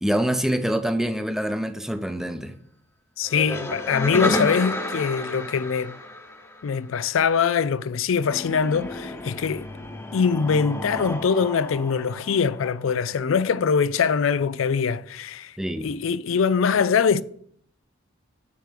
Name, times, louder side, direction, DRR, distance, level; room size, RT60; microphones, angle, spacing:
voice 1, 0.0-2.5 15.6-15.9, equal, ahead, 0.7 m, -25 dB
voice 2, 3.2-6.0 6.6-9.7 10.1-15.5 15.8-17.2, left 6 dB, 85° left, 0.4 m, -23 dB
sound 1, 3.2-6.9 8.2-12.9, left 1 dB, 15° left, 0.9 m, -31 dB
7.3 x 6.9 x 6.4 m
head